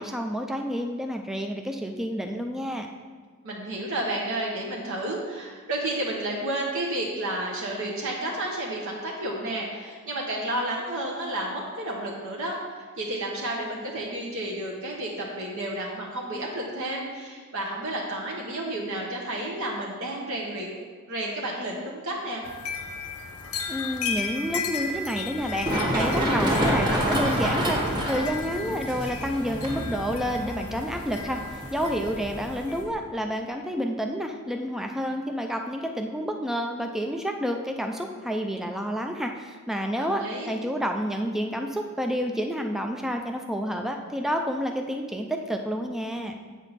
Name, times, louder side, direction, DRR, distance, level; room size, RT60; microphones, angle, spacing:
voice 1, 0.0-2.9 23.7-46.3, equal, ahead, 3 dB, 0.4 m, -29 dB
voice 2, 3.4-22.4 39.9-40.5, right 1 dB, 65° right, -2 dB, 1.0 m, -31 dB
sound 1, 22.4-32.8, left 5 dB, 85° left, 0.9 m, -35 dB
Run, 25.4-32.9, equal, 20° right, 1.3 m, -28 dB
7.8 x 6.3 x 4.1 m, 1.5 s
head